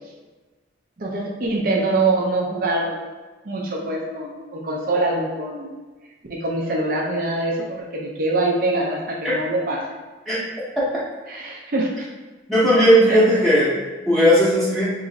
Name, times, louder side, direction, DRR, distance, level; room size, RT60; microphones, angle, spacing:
voice 1, 1.0-3.0 3.5-5.7 6.3-9.9 11.3-11.9 13.1-13.3, right 2 dB, 50° right, -2 dB, 0.5 m, -24 dB
voice 2, 12.5-13.7 14.1-14.9, equal, ahead, -10 dB, 0.7 m, -16 dB
3.0 x 2.5 x 3.9 m, 1.3 s
head